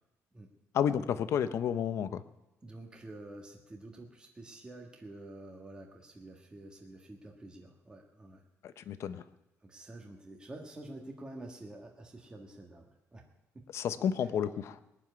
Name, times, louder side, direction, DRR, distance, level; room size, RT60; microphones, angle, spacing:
voice 1, 0.7-2.2 8.9-9.2 13.7-14.8, left 8 dB, 55° left, 12 dB, 0.8 m, -31 dB
voice 2, 2.6-8.4 8.8-9.1 9.6-13.2 13.5-13.6 14.2-14.3, right 2 dB, 15° right, 1 dB, 1.6 m, -48 dB
21.0 x 7.2 x 9.7 m, 0.94 s
cardioid pair, 180°, 6 cm